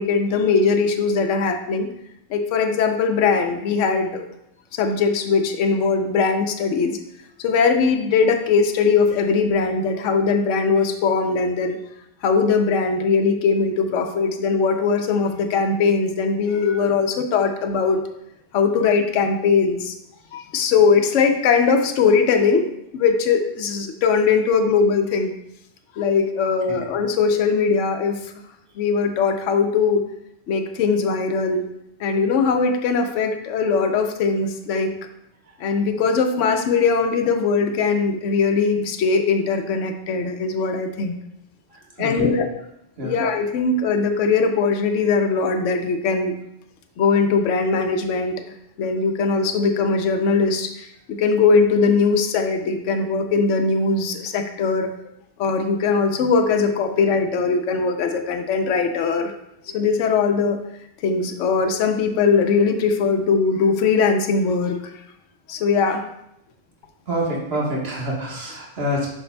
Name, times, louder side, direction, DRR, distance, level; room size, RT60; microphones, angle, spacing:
voice 1, 0.0-1.9 2.3-4.3 4.7-7.0 7.4-11.8 12.2-18.0 18.5-19.9 20.3-25.3 26.0-28.3 28.8-30.0 30.5-31.7 32.0-34.9 35.6-41.2 42.0-42.5 43.0-46.4 47.0-48.4 48.8-54.9 55.4-59.3 59.7-60.6 61.0-64.9 65.5-66.0, left 5 dB, 75° left, 5 dB, 1.0 m, -20 dB
voice 2, 41.7-42.4 43.0-43.1 67.1-69.1, equal, 55° right, -2 dB, 1.5 m, -27 dB
6.5 x 6.4 x 2.2 m, 0.80 s
omnidirectional pair, 1.3 m